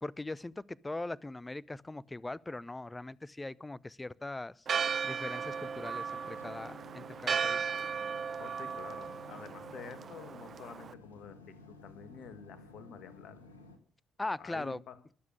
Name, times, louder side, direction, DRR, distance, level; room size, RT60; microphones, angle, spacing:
voice 1, 0.0-4.7 5.0-7.7 14.2-14.8, left 2 dB, 20° left, 0.7 m, -40 dB
Church bell, 4.7-10.9, right 6 dB, 50° right, 0.6 m, -36 dB
sound 1, 5.3-13.8, left 2 dB, 85° left, 1.5 m, -54 dB
voice 2, 8.4-13.4 14.4-15.0, left 7 dB, 60° left, 1.7 m, -49 dB
22.0 x 7.5 x 6.4 m
figure-of-eight pair, 45°, 0 cm